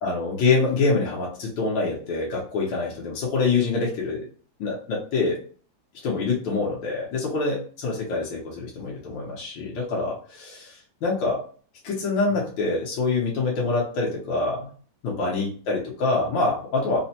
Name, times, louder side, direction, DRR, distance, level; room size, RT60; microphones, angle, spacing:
voice 1, 0.0-4.2 4.6-5.4 6.0-11.4 11.8-14.7 15.0-17.0, left 3 dB, 80° left, -4 dB, 1.5 m, -25 dB
4.0 x 2.1 x 2.7 m, 0.43 s
omnidirectional pair, 2.1 m